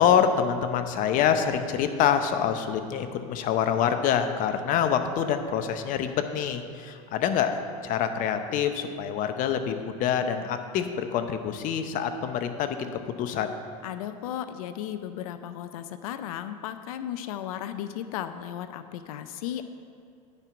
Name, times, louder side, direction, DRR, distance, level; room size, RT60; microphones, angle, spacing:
voice 1, 0.0-12.9 13.2-13.6, left 8 dB, 50° left, 8 dB, 0.8 m, -26 dB
voice 2, 13.8-19.6, left 10 dB, 80° left, 10 dB, 0.5 m, -35 dB
9.8 x 4.7 x 6.9 m, 2.5 s
supercardioid pair, 105°, 18 cm